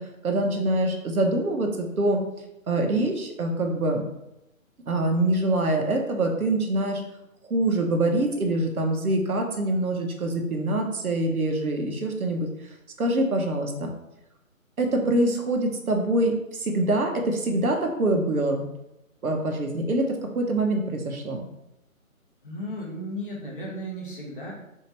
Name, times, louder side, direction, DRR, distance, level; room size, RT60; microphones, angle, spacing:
voice 1, 0.2-2.2 2.7-4.0 4.9-7.0 7.5-12.5 13.0-13.9 14.8-18.7 19.2-20.0 20.3-21.4, right 1 dB, 80° right, 2 dB, 1.0 m, -24 dB
voice 2, 22.4-24.5, equal, 40° left, -3 dB, 1.1 m, -35 dB
4.4 x 2.8 x 3.0 m, 0.88 s
hypercardioid pair, 160°, 42 cm